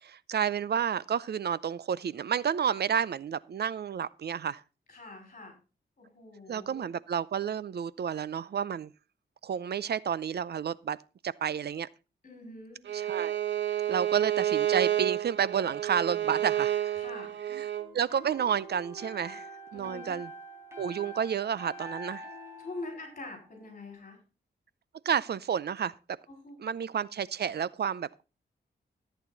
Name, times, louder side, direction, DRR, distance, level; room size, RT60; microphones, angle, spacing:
voice 1, 0.0-4.6 6.5-8.9 9.4-11.0 11.2-11.9 12.9-13.4 13.9-16.9 17.5-17.7 17.9-20.3 20.8-22.2 25.1-25.9 26.6-28.2, right 8 dB, 60° right, 0.6 m, -30 dB
voice 2, 4.9-5.5 6.0-6.9 12.2-12.8 16.9-17.3 19.7-20.2 22.6-24.2 26.3-26.7, left 2 dB, 40° left, 5.4 m, -44 dB
Bowed string instrument, 12.9-17.9, right 11 dB, 75° right, 1.1 m, -30 dB
sound 1, 17.7-23.7, right 1 dB, 15° right, 4.4 m, -46 dB
14.0 x 9.0 x 4.0 m
wide cardioid pair, 130°, 19 cm